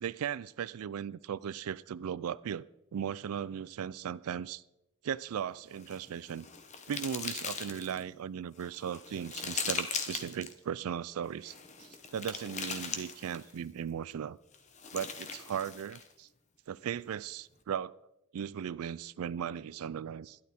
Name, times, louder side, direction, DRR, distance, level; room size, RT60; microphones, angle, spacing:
voice 1, 0.0-2.7 2.9-4.6 5.0-6.5 6.9-14.4 14.9-16.3 16.7-18.0 18.3-20.4, right 8 dB, 75° right, 0.4 m, -37 dB
sound 1, 5.7-8.0 8.6-10.5 11.4-13.6 14.5-16.1, left 6 dB, 30° left, 1.0 m, -39 dB
12.0 x 11.5 x 4.3 m
head